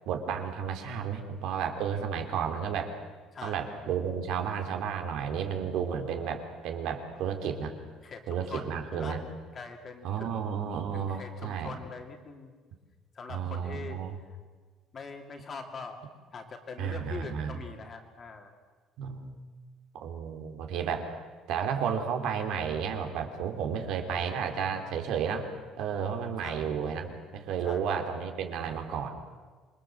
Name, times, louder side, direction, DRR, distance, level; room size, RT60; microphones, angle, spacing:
voice 1, 0.1-2.9 3.4-7.7 8.3-9.2 10.0-11.7 13.3-14.2 16.8-17.5 19.0-19.3 20.0-21.0 21.5-25.5 25.8-29.1, right 7 dB, 65° right, 5 dB, 3.3 m, -32 dB
voice 2, 3.3-3.8 8.0-9.2 9.5-10.5 10.9-12.5 13.1-14.0 14.3-14.4 14.9-16.0 16.3-18.5 26.4-26.8 27.6-27.9, left 4 dB, 30° left, 4 dB, 2.6 m, -43 dB
27.0 x 22.5 x 7.6 m, 1.4 s
cardioid pair, 165°, 0 cm